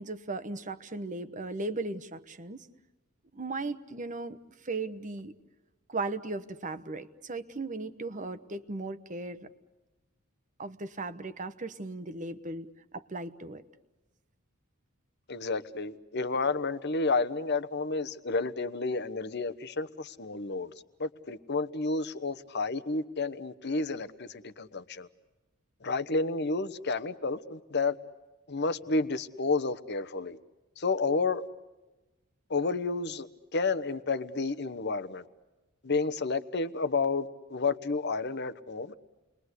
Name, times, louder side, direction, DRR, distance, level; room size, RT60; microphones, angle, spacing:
voice 1, 0.0-2.7 3.3-5.3 5.9-9.5 10.6-13.6, right 3 dB, 35° right, 11 dB, 1.1 m, -37 dB
voice 2, 15.3-20.7 21.0-25.1 25.8-28.0 28.5-30.4 30.8-31.5 32.5-35.3 35.8-38.9, left 3 dB, 50° left, 12 dB, 1.1 m, -31 dB
30.0 x 22.0 x 8.2 m, 1.1 s
head